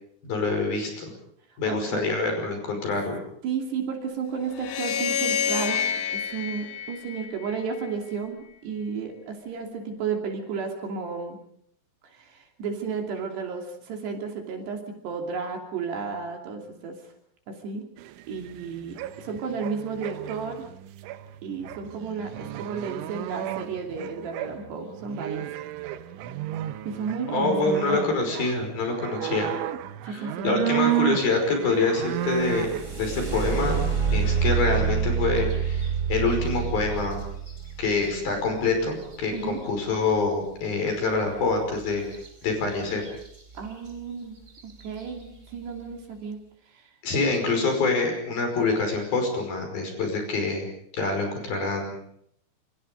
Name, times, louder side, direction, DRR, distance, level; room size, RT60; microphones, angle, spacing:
voice 1, 0.2-1.1 1.6-3.2 27.3-29.5 30.0-33.8 34.1-37.2 37.8-42.0 42.4-43.0 47.0-50.7 50.9-52.0, left 3 dB, 50° left, 4 dB, 7.0 m, -26 dB
voice 2, 1.7-2.2 3.4-5.8 6.1-11.4 12.0-17.0 17.5-17.9 18.3-20.7 21.4-25.4 26.8-28.0 30.0-30.9 39.3-39.6 43.5-46.4 46.7-46.9, right 5 dB, 60° right, 3 dB, 4.6 m, -33 dB
sound 1, 4.5-7.8, left 8 dB, 65° left, 3.4 m, -28 dB
sound 2, 18.0-33.9, right 14 dB, 75° right, 3.4 m, -33 dB
sound 3, 32.2-40.0 42.1-42.3 42.7-43.3 43.9-44.0 44.5-44.8, right 6 dB, 15° right, 3.7 m, -28 dB
27.0 x 26.0 x 5.2 m, 0.67 s
omnidirectional pair, 5.8 m